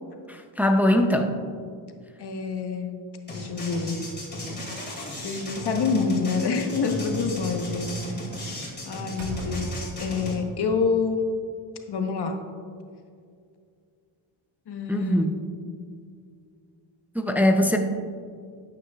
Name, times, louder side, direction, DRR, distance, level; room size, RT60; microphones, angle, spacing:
voice 1, 0.3-1.3 14.9-15.4 17.1-17.8, left 1 dB, 5° right, 4 dB, 0.5 m, -21 dB
voice 2, 2.2-3.0 3.3-4.0 5.2-8.2 8.8-11.2 11.9-12.4 14.7-15.3, left 5 dB, 55° left, 4 dB, 1.1 m, -27 dB
sound 1, 3.3-10.4, equal, 20° left, 2.4 m, -35 dB
Slam, 5.3-6.3 8.4-8.6 9.1-10.3, right 2 dB, 85° right, 1.8 m, -37 dB
12.5 x 9.3 x 2.4 m, 2.2 s
cardioid pair, 135°, 46 cm